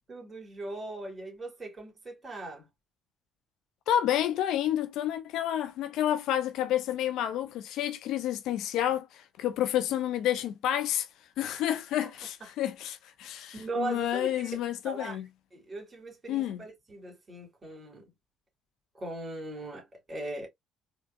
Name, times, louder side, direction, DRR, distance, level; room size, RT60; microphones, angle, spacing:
voice 1, 0.0-2.7 12.0-12.1 13.5-14.5 14.8-15.2 15.5-18.0 18.9-20.5, right 2 dB, 30° right, 2.2 m, -39 dB
voice 2, 3.9-11.1 11.4-15.3 16.3-16.6, left 11 dB, 60° left, 0.4 m, -30 dB
4.2 x 2.4 x 2.4 m
figure-of-eight pair, 50°, 0 cm